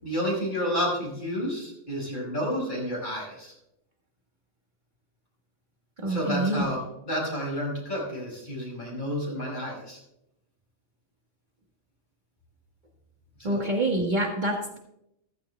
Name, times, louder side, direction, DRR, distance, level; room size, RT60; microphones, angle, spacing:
voice 1, 0.0-3.5 6.1-10.0 13.4-13.6, equal, 40° left, -4 dB, 5.7 m, -30 dB
voice 2, 6.0-6.6 13.4-14.8, right 1 dB, 40° right, 0 dB, 1.7 m, -26 dB
15.0 x 15.0 x 2.3 m, 0.82 s
omnidirectional pair, 1.2 m